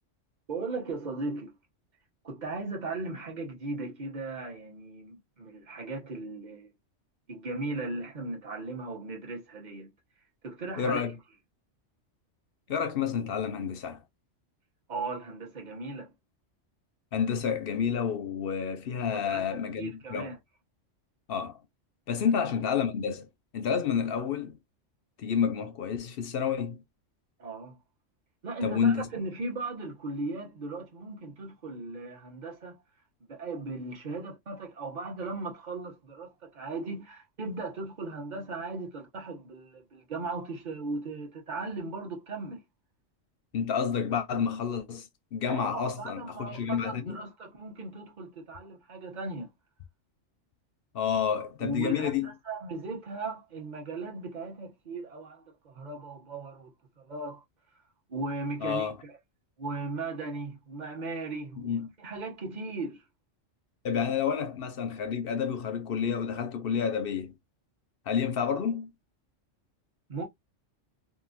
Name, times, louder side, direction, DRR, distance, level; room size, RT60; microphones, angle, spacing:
voice 1, 0.5-1.5 2.2-6.7 7.3-9.9 10.4-11.2 14.9-16.1 19.0-20.4 27.4-27.8 28.4-32.8 33.2-42.6 45.5-49.5 51.6-56.7 57.0-57.4 58.1-59.2 59.6-61.7 62.0-63.0 70.1-70.2, right 3 dB, 40° right, 1.1 m, -37 dB
voice 2, 10.8-11.1 12.7-14.0 17.1-20.3 21.3-21.6 22.1-23.3 23.5-24.6 25.2-26.8 28.6-29.1 43.5-47.2 50.9-52.3 58.6-59.0 61.6-61.9 63.8-67.3 68.1-68.9, left 7 dB, 60° left, 0.7 m, -29 dB
3.0 x 2.5 x 2.5 m
omnidirectional pair, 1.3 m